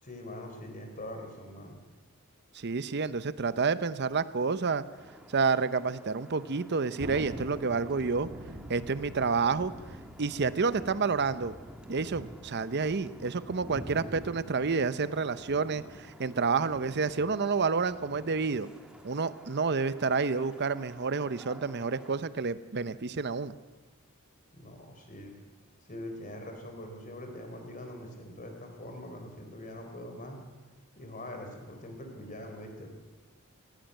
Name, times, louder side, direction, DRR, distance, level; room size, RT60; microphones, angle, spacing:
voice 1, 0.0-1.8 24.5-25.4 25.9-30.4 30.9-32.9, left 1 dB, 35° left, 4 dB, 3.9 m, -43 dB
voice 2, 2.5-4.8 5.3-8.3 8.7-9.7 10.2-11.6 11.9-18.7 19.0-23.5, right 4 dB, 50° right, 14 dB, 0.7 m, -29 dB
sound 1, 5.0-22.2, equal, 5° right, 1.8 m, -49 dB
Thunder, 7.0-13.8, right 1 dB, 30° right, 1.6 m, -46 dB
18.0 x 17.0 x 9.1 m, 1.3 s
head